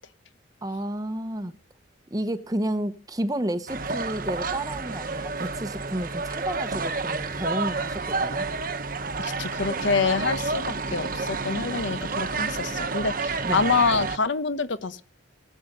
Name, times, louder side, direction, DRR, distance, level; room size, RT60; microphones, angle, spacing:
voice 1, 0.6-1.6 2.1-8.5 13.4-13.7, right 1 dB, 20° right, 0.8 m, -31 dB
sound 1, 3.7-14.2, right 4 dB, 45° right, 1.1 m, -30 dB
voice 2, 9.2-15.0, left 4 dB, 65° left, 0.9 m, -26 dB
17.5 x 8.6 x 6.6 m
head